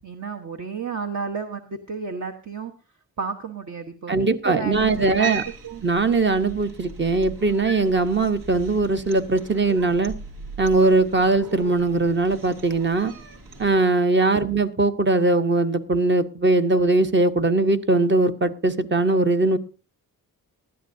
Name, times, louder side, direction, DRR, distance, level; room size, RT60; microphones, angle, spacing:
voice 1, 0.0-2.7 3.2-5.4 5.6-5.8, right 5 dB, 50° right, 3 dB, 1.2 m, -32 dB
voice 2, 4.1-5.4 5.8-10.1 10.6-13.1 13.6-19.6, right 3 dB, 30° right, 9 dB, 0.9 m, -20 dB
Cat, 4.7-13.7, right 4 dB, 75° right, 2.5 m, -38 dB
19.0 x 12.5 x 2.7 m, 0.33 s
wide cardioid pair, 125°, 38 cm